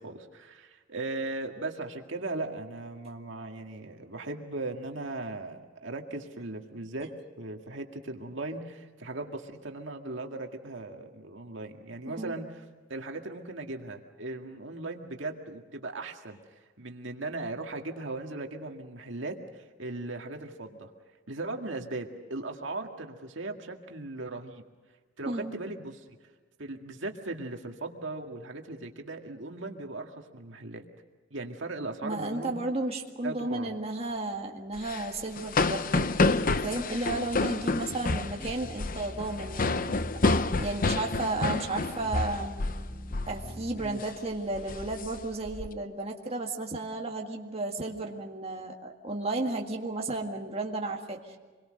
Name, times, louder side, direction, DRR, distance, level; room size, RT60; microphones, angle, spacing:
voice 1, 0.0-7.1 7.4-12.6 12.9-16.4 16.8-20.9 21.3-24.6 25.2-26.1 26.6-30.8 31.3-32.6 33.2-33.7 43.8-44.0, right 2 dB, 70° right, 3 dB, 2.0 m, -38 dB
voice 2, 25.2-25.6 32.0-40.0 40.3-42.5 43.3-51.4, right 2 dB, 30° right, 0 dB, 1.9 m, -33 dB
sound 1, 34.8-42.9 43.1-43.4 43.8-44.1 44.5-45.7, left 3 dB, 45° left, 0.8 m, -29 dB
sound 2, 37.1-44.0, equal, 25° left, 3.9 m, -44 dB
26.5 x 22.5 x 6.5 m, 1.4 s
head